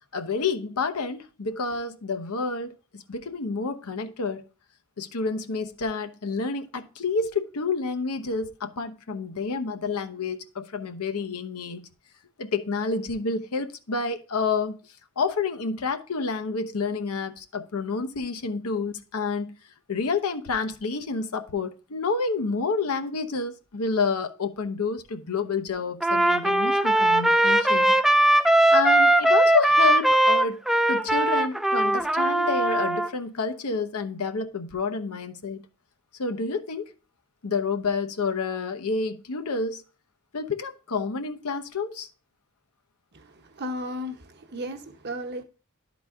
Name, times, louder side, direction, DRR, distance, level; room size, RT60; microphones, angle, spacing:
voice 1, 0.1-4.4 5.0-11.8 12.4-14.8 15.2-19.6 19.9-27.9 28.7-30.6 30.9-35.6 36.2-36.9 37.4-39.8 40.3-42.1, left 4 dB, 85° left, 0.8 m, -29 dB
Trumpet, 26.0-33.1, right 1 dB, ahead, 0.3 m, -20 dB
voice 2, 43.1-45.4, equal, 50° right, 0.9 m, -35 dB
11.5 x 4.0 x 3.5 m
head